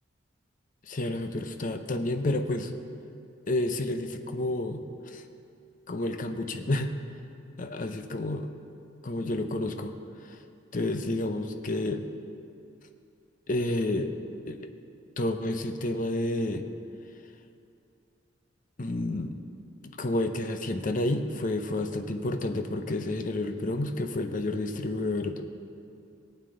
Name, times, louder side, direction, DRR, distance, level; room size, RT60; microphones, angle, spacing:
voice 1, 0.9-2.8 3.5-5.2 5.9-6.9 7.6-8.5 9.0-9.9 10.3-10.4 10.7-12.0 13.5-14.1 14.5-14.7 15.2-16.6 18.8-19.3 20.0-25.4, left 1 dB, 45° left, 7 dB, 0.7 m, -30 dB
18.0 x 8.8 x 3.8 m, 2.5 s
head